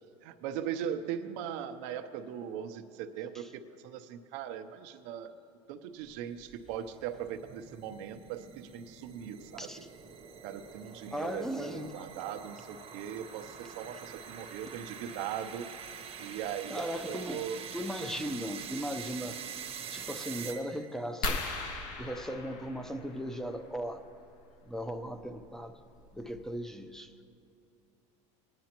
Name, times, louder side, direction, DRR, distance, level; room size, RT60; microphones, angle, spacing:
voice 1, 0.2-5.3 5.7-9.7 10.4-15.7 16.2-17.6, right 9 dB, 75° right, 8 dB, 0.7 m, -39 dB
sound 1, 6.2-21.0, right 7 dB, 40° right, 0.9 m, -46 dB
voice 2, 11.1-12.1 16.7-19.4 19.9-21.4 22.0-24.0 24.7-25.8 26.1-27.1, equal, 5° left, 8 dB, 0.6 m, -37 dB
sound 2, 21.2-23.6 25.2-25.4 26.0-26.1 26.3-26.6, left 2 dB, 65° left, 1.4 m, -37 dB
18.5 x 10.5 x 3.0 m, 2.4 s
supercardioid pair, 115°, 16 cm